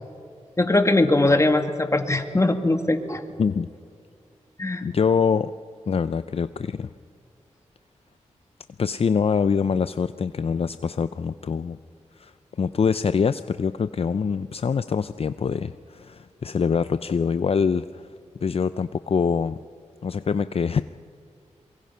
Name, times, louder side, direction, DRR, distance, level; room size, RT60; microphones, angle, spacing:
voice 1, 0.6-3.2 4.6-4.8, left 2 dB, 25° left, 6 dB, 2.1 m, -21 dB
voice 2, 4.8-5.5 5.9-6.9 8.8-11.8 12.2-12.3 12.6-18.1 18.4-19.6 20.0-20.8, left 6 dB, 50° left, 13 dB, 0.5 m, -24 dB
25.5 x 23.0 x 5.6 m, 2.3 s
cardioid pair, 60°, 12 cm